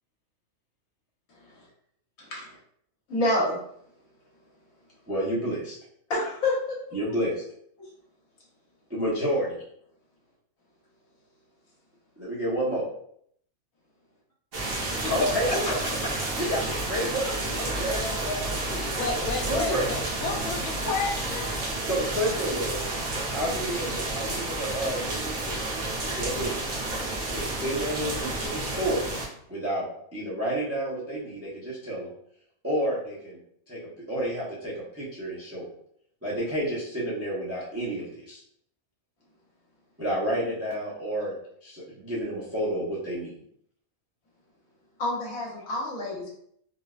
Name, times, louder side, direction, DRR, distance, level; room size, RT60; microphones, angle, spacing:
voice 1, 3.1-3.6 6.1-6.8 15.2-15.6 45.0-46.3, left 1 dB, 70° left, -3 dB, 1.4 m, -27 dB
voice 2, 5.1-5.8 6.9-7.4 8.9-9.6 12.2-12.8 15.1-16.0 16.3-19.0 19.4-19.9 21.8-22.9 23.3-25.6 26.0-26.7 27.3-29.1 29.5-32.1 32.6-33.4 33.7-33.8 34.1-35.7 36.2-38.4 40.0-41.3 41.6-43.3, equal, 20° right, -6 dB, 0.3 m, -30 dB
sound 1, 14.5-29.3, right 2 dB, 50° right, 0.8 m, -31 dB
voice 3, 19.0-19.7 20.2-21.5, left 4 dB, 85° left, 2 dB, 1.1 m, -31 dB
3.9 x 2.2 x 2.3 m, 0.68 s
omnidirectional pair, 1.5 m